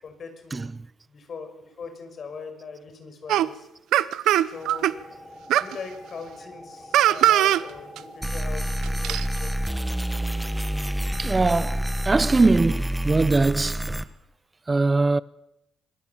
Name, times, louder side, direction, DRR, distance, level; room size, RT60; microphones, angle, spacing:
voice 1, 0.0-0.7 1.1-3.7 4.5-5.0 5.4-9.5, left 5 dB, 50° left, 5.7 m, -40 dB
sound 1, 3.3-3.5 3.9-4.9 5.5-5.7 6.9-7.6 8.0-8.1 8.8-9.3, right 12 dB, 85° right, 0.8 m, -20 dB
sound 2, 4.5-12.3, left 1 dB, 10° left, 7.8 m, -45 dB
sound 3, 8.2-14.0, equal, 5° right, 1.4 m, -27 dB
voice 2, 11.2-14.0 14.7-15.2, right 3 dB, 25° right, 0.8 m, -22 dB
25.5 x 20.5 x 7.3 m
cardioid pair, 90°, 0 cm